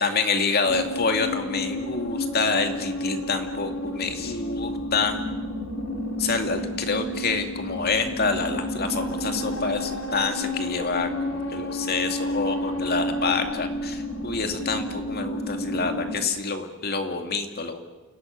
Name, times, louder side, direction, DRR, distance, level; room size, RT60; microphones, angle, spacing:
voice 1, 0.0-5.2 6.2-17.8, left 4 dB, 50° left, 5 dB, 2.5 m, -27 dB
sound 1, 0.6-16.2, left 1 dB, 75° left, 4.3 m, -31 dB
28.5 x 18.0 x 9.4 m, 1.1 s
head